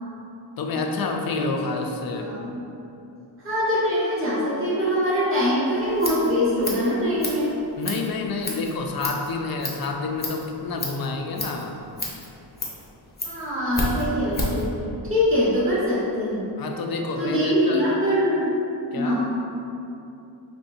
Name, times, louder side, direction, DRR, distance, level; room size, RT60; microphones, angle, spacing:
voice 1, 0.6-2.3 7.8-11.8 16.6-17.9 18.9-19.2, left 3 dB, 55° left, 2 dB, 0.5 m, -28 dB
voice 2, 2.1-2.6 3.4-7.5 13.2-14.7 15.1-16.4 17.2-18.5 18.9-19.3, equal, 30° right, -10 dB, 1.3 m, -23 dB
Scissors, 5.7-14.7, left 2 dB, 20° left, 0.7 m, -33 dB
5.5 x 3.3 x 2.6 m, 2.8 s
wide cardioid pair, 155°, 45 cm